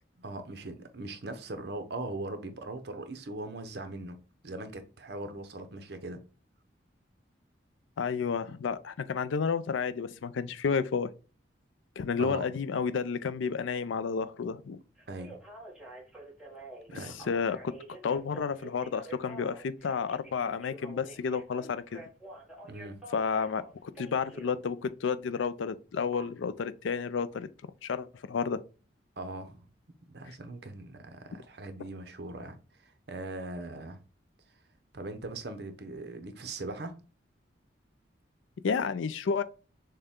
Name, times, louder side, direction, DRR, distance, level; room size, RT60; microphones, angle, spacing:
voice 1, 0.2-4.2 4.4-6.2 12.2-12.5 15.1-15.4 16.9-17.3 22.7-23.0 29.2-29.6 30.1-32.6 32.8-34.0 34.9-36.9, right 2 dB, 60° right, 0.7 m, -40 dB
voice 2, 8.0-11.1 12.0-14.8 16.9-17.7 18.0-22.0 23.1-27.5 27.8-28.6 38.6-39.4, left 5 dB, 90° left, 0.4 m, -31 dB
Telephone, 15.0-24.6 26.1-26.2, right 2 dB, 5° right, 1.1 m, -48 dB
6.5 x 2.2 x 3.6 m
head